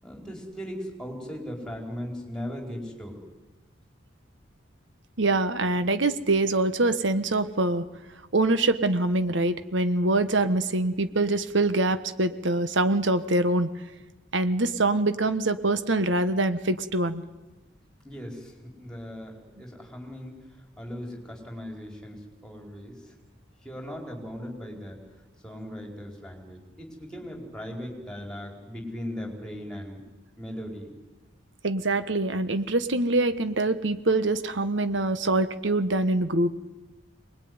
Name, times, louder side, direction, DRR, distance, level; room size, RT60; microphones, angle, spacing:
voice 1, 0.0-3.2 18.0-23.1 23.6-25.0 25.4-30.0 30.4-30.9, equal, 5° left, 1 dB, 4.8 m, -38 dB
voice 2, 5.2-7.8 8.3-13.7 14.3-17.2 31.6-36.5, right 2 dB, 70° right, 11 dB, 1.3 m, -24 dB
24.0 x 20.5 x 9.7 m, 1.1 s
head